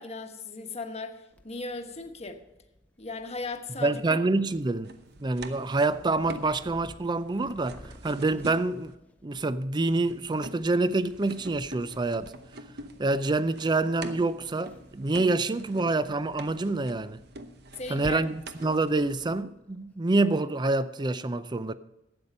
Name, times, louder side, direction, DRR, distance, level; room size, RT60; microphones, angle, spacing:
voice 1, 0.0-2.4 3.0-4.0 17.8-18.2, left 3 dB, 35° left, 1.1 m, -37 dB
Purr, 1.3-20.0, equal, 10° left, 0.7 m, -53 dB
voice 2, 3.8-4.9 5.2-8.9 9.2-12.3 13.0-17.2 17.9-21.7, right 2 dB, 25° right, 0.5 m, -27 dB
sound 1, 4.8-8.9 9.9-19.4, right 2 dB, 60° right, 0.9 m, -46 dB
12.5 x 8.6 x 5.4 m
head